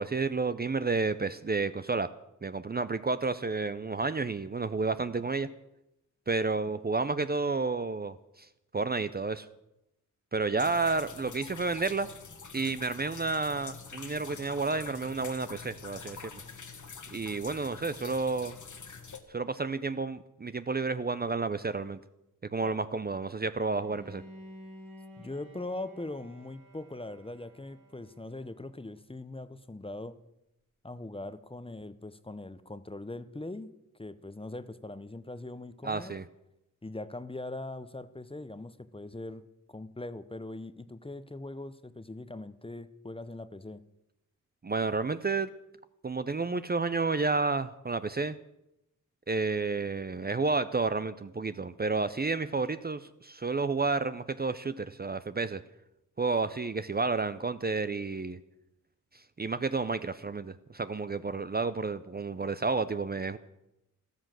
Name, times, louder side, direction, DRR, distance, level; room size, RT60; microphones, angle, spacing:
voice 1, 0.0-2.1 2.4-5.5 6.3-8.5 8.7-9.5 10.3-12.1 12.5-16.4 17.1-18.5 19.3-22.0 22.4-24.2 35.8-36.2 44.6-45.5 46.0-48.4 49.3-55.6 56.2-58.4 59.4-63.4, right 3 dB, 30° right, 13 dB, 0.6 m, -31 dB
sound 1, 10.6-19.2, left 5 dB, 65° left, 1.7 m, -46 dB
Bowed string instrument, 23.7-28.7, equal, 85° right, 3.6 m, -52 dB
voice 2, 25.2-30.2 30.8-36.2 36.8-43.8, left 2 dB, 15° left, 13 dB, 0.8 m, -41 dB
14.0 x 13.0 x 7.6 m, 0.87 s
wide cardioid pair, 95°, 32 cm